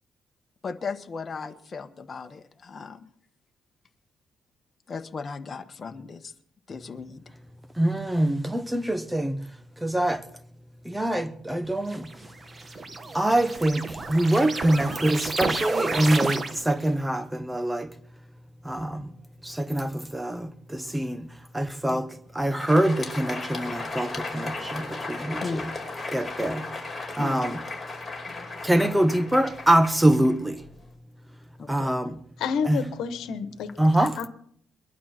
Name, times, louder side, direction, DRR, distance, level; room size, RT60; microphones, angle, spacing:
voice 1, 0.6-3.1 4.9-6.3 6.7-7.2 21.9-22.1 25.4-25.9 26.5-26.7 27.2-27.4 31.6-31.9, left 5 dB, 40° left, 1.4 m, -37 dB
voice 2, 7.8-9.5 9.8-10.3 10.8-12.1 13.1-17.9 18.6-19.1 19.4-21.3 21.5-25.7 26.1-26.6 27.2-27.6 28.6-30.7 31.7-32.2 32.6-32.8 33.8-34.2, right 1 dB, 10° right, 1.1 m, -24 dB
sound 1, 11.9-16.9, right 3 dB, 30° right, 1.6 m, -31 dB
Crowd, 22.4-30.9, left 3 dB, 15° left, 5.2 m, -36 dB
voice 3, 32.4-33.7 34.0-34.3, left 6 dB, 85° left, 1.4 m, -29 dB
22.5 x 12.0 x 4.5 m
cardioid pair, 90°, 0 cm